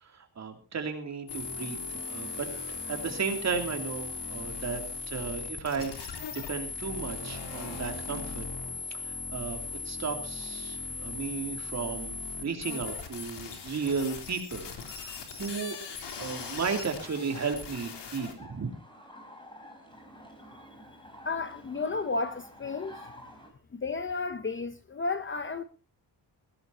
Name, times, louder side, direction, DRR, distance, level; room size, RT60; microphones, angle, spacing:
voice 1, 0.0-2.5 2.9-4.8 5.1-8.5 9.0-9.6 9.8-15.8 16.2-18.7, right 5 dB, 40° right, 2.9 m, -34 dB
sound 1, 1.3-18.3, left 4 dB, 80° left, 3.4 m, -38 dB
sound 2, 18.4-23.5, equal, 10° left, 4.4 m, -50 dB
voice 2, 21.2-22.9 23.7-25.6, left 3 dB, 30° left, 0.8 m, -32 dB
20.5 x 17.0 x 2.8 m
wide cardioid pair, 175°, 41 cm